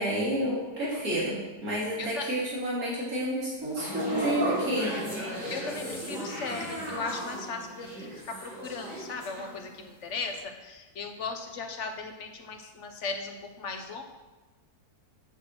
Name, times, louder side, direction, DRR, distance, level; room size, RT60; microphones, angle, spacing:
voice 1, 0.0-4.9, equal, 60° right, -7 dB, 3.9 m, -30 dB
voice 2, 2.0-2.3 5.5-14.0, left 4 dB, 50° left, 5 dB, 1.2 m, -37 dB
sound 1, 3.6-9.8 10.1-10.4, equal, 90° right, 4.6 m, -36 dB
8.6 x 6.4 x 6.0 m, 1.2 s
omnidirectional pair, 1.7 m